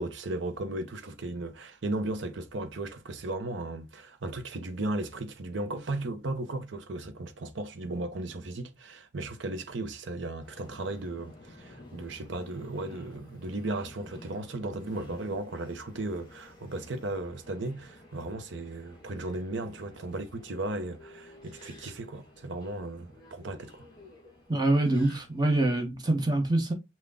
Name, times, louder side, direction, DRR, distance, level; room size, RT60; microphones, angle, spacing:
voice 1, 0.0-23.9, right 2 dB, 85° right, 0.8 m, -36 dB
Subway metro underground, 10.4-25.7, left 1 dB, 25° left, 1.6 m, -52 dB
voice 2, 24.5-26.7, right 2 dB, 20° right, 1.0 m, -25 dB
5.9 x 2.3 x 3.6 m
head